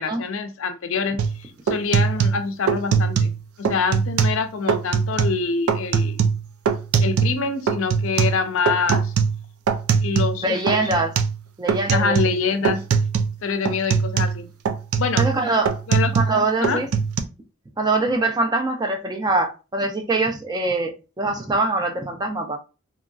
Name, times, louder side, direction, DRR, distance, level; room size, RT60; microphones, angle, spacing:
voice 1, 0.0-3.3 3.6-6.2 7.0-9.1 10.0-10.8 11.9-12.8 13.4-14.5 15.0-15.2 15.9-16.2 16.6-16.8, left 5 dB, 65° left, 0.5 m, -25 dB
sound 1, 1.2-1.4 1.7-3.4 3.6-4.4 4.7-5.4 5.7-7.4 7.7-10.4 10.7-11.4 11.7-12.4 12.6-13.3 13.6-16.4 16.6-17.2, right 6 dB, 90° right, 0.4 m, -21 dB
voice 2, 10.4-11.2 11.6-12.2 15.2-15.8 16.2-16.9 17.8-22.6, right 2 dB, 20° right, 0.4 m, -23 dB
3.0 x 2.6 x 2.3 m
head